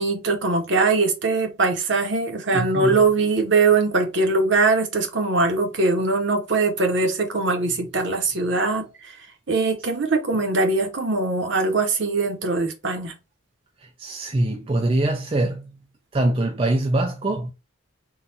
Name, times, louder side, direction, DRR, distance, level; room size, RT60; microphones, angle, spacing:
voice 1, 0.0-9.1 9.5-13.1, right 3 dB, 60° right, 1.0 m, -21 dB
voice 2, 2.5-3.1 13.8-15.7 16.1-17.5, right 1 dB, 25° right, 0.4 m, -23 dB
3.9 x 2.4 x 4.1 m
head